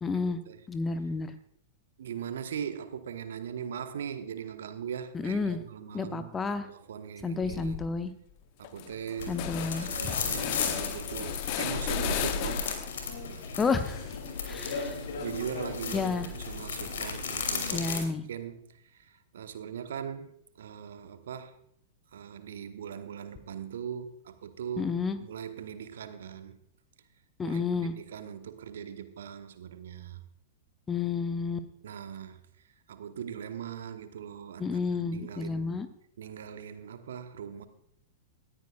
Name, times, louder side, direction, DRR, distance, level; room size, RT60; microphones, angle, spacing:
voice 1, 0.0-0.4 0.7-1.3 5.1-5.6 5.9-6.7 7.2-8.1 9.3-9.9 13.6-14.1 14.4-15.0 15.9-16.3 17.7-18.2 24.8-25.2 27.4-27.9 30.9-31.7 34.6-35.9, left 4 dB, 15° left, 0.9 m, -30 dB
voice 2, 2.0-7.8 8.6-9.4 9.8-12.7 14.6-16.1 16.5-21.5 22.1-24.9 25.2-26.6 27.4-30.2 31.8-32.4 32.9-35.8 36.2-37.6, right 8 dB, 60° right, 1.1 m, -40 dB
sound 1, 7.4-7.9 8.3-8.4 8.6-13.1 13.4-15.6, left 12 dB, 45° left, 0.9 m, -37 dB
sound 2, 9.2-18.0, left 5 dB, 60° left, 2.8 m, -35 dB
19.0 x 14.0 x 2.4 m
figure-of-eight pair, 100°, 0 cm